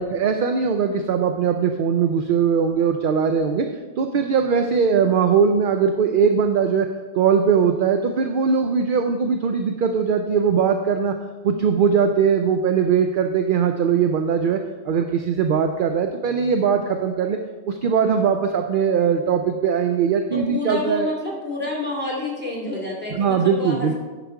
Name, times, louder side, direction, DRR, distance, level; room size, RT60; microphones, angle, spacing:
voice 1, 0.0-3.7 4.0-6.9 7.1-11.1 11.4-17.4 17.7-21.1 23.1-23.9, right 6 dB, 60° right, 6 dB, 0.6 m, -20 dB
voice 2, 20.3-23.9, left 2 dB, 10° right, -3 dB, 2.2 m, -28 dB
9.9 x 5.0 x 4.6 m, 1.3 s
omnidirectional pair, 1.2 m